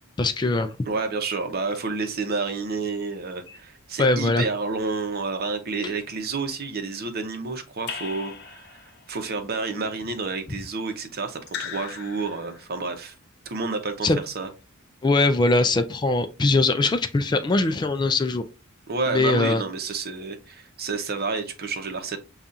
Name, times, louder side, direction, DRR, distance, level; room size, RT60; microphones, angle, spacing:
voice 1, 0.2-0.7 3.5-3.6 4.0-4.4 14.0-14.2 15.0-18.4 19.1-19.6, left 2 dB, 20° left, 0.3 m, -21 dB
voice 2, 0.8-13.2 13.5-14.5 18.9-22.2, right 4 dB, 45° right, 0.8 m, -30 dB
Raindrop / Drip, 7.9-9.1 11.5-12.8, left 7 dB, 55° left, 0.7 m, -37 dB
6.8 x 2.4 x 2.6 m
head